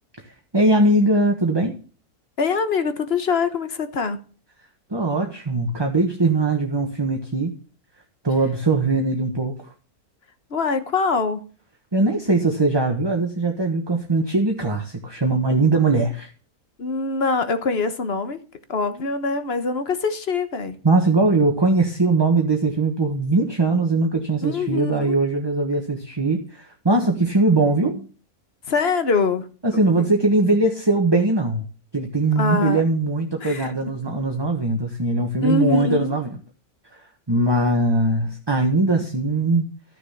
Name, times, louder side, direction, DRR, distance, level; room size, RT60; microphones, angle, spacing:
voice 1, 0.5-1.8 4.9-7.5 8.2-9.7 11.9-16.3 20.8-28.1 29.6-31.6 31.9-36.3 37.3-39.7, right 2 dB, 15° right, 1.3 m, -20 dB
voice 2, 2.4-4.2 10.5-11.4 16.8-18.4 18.7-20.8 24.4-25.2 28.7-29.5 29.9-30.1 32.4-32.8 33.4-33.7 35.4-36.2, left 4 dB, 45° left, 1.3 m, -23 dB
13.5 x 6.7 x 5.8 m
omnidirectional pair, 1.6 m